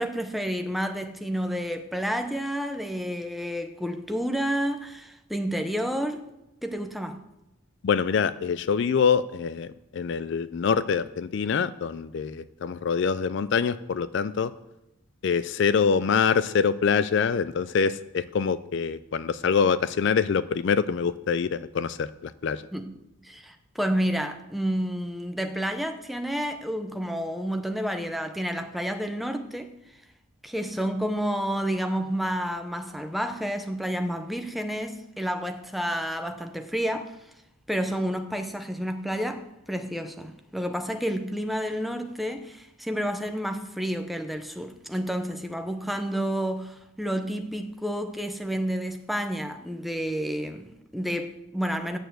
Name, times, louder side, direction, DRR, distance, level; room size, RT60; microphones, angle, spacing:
voice 1, 0.0-6.2 6.6-7.3 22.7-23.0 23.2-29.7 30.4-37.2 37.7-52.0, equal, ahead, 0.7 m, -30 dB
voice 2, 7.8-14.5 15.2-22.6, left 6 dB, 55° left, 0.3 m, -25 dB
9.2 x 6.6 x 7.8 m
head